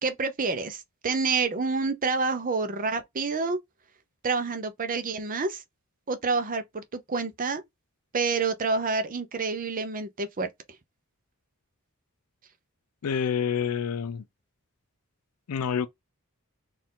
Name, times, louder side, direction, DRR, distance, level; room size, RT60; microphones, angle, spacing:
voice 1, 0.0-3.6 4.2-5.6 6.1-7.6 8.1-10.5, right 4 dB, 40° right, 0.6 m, -28 dB
voice 2, 13.0-14.2 15.5-15.9, left 7 dB, 90° left, 0.4 m, -27 dB
4.3 x 2.5 x 3.7 m
head